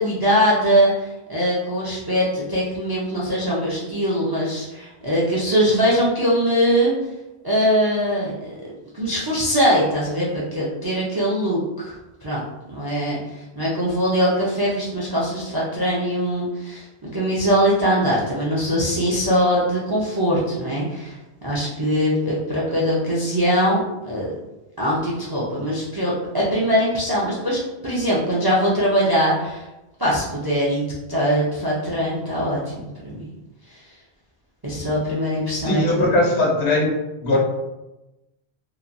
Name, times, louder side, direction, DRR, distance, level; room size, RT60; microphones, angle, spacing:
voice 1, 0.0-6.9 7.4-8.5 8.9-13.2 13.6-21.2 21.4-24.3 24.8-29.7 30.0-33.3 33.7-33.8 34.6-36.2, equal, 35° right, -6 dB, 0.3 m, -22 dB
voice 2, 35.6-37.4, left 2 dB, 75° left, -2 dB, 1.0 m, -20 dB
2.9 x 2.2 x 2.5 m, 0.99 s
omnidirectional pair, 1.1 m